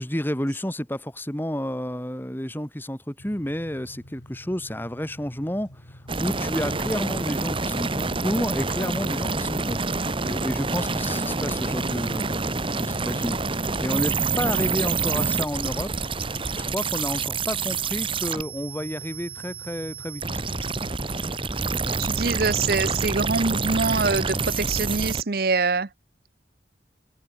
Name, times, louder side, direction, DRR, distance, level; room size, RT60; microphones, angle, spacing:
voice 1, 0.0-9.8 10.1-15.9 16.5-20.7, equal, 10° left, 2.2 m, -31 dB
sound 1, 3.2-21.5, equal, 75° left, 4.8 m, -47 dB
sound 2, 6.1-25.2, right 4 dB, 30° right, 1.5 m, -27 dB
voice 2, 22.0-25.9, right 4 dB, 55° right, 0.8 m, -24 dB
head